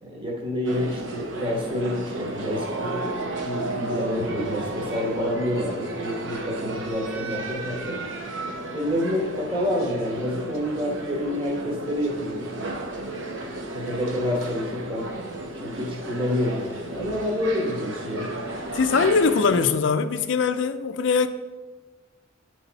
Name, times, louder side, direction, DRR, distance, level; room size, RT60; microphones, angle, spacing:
voice 1, 0.0-8.0 8.7-12.5 13.7-15.1 15.6-18.3, left 1 dB, 25° right, 1.2 m, -28 dB
sound 1, 0.7-19.7, right 2 dB, 80° right, 0.8 m, -33 dB
voice 2, 18.7-21.3, left 5 dB, 70° left, 0.4 m, -21 dB
9.8 x 3.4 x 4.0 m
head